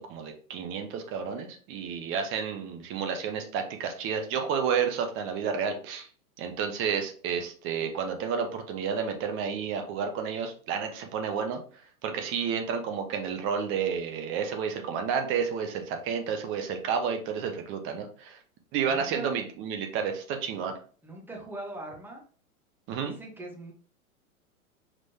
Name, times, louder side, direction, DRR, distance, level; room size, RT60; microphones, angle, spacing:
voice 1, 0.0-6.1 6.4-11.6 12.0-18.4 18.7-20.7 22.9-23.1, right 6 dB, 30° right, 5 dB, 0.9 m, -31 dB
voice 2, 18.8-19.3 21.0-22.2 23.0-23.7, right 1 dB, 5° right, -1 dB, 1.0 m, -41 dB
5.0 x 3.7 x 2.8 m, 0.42 s
figure-of-eight pair, 105°, 43 cm